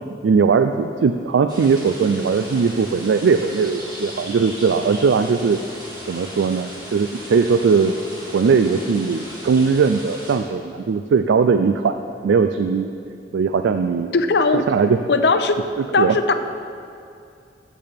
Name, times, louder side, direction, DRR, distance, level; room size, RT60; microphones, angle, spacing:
voice 1, 0.2-5.6 6.1-8.0 8.3-12.0 12.2-12.9 13.3-14.1 14.5-15.0 15.8-16.2, right 5 dB, 85° right, 8 dB, 0.4 m, -19 dB
sound 1, 1.5-10.3, equal, 20° right, 2.1 m, -37 dB
voice 2, 14.1-14.7 15.1-15.6 15.9-16.3, left 3 dB, 65° left, 8 dB, 0.6 m, -18 dB
14.5 x 8.5 x 3.5 m, 2.5 s
head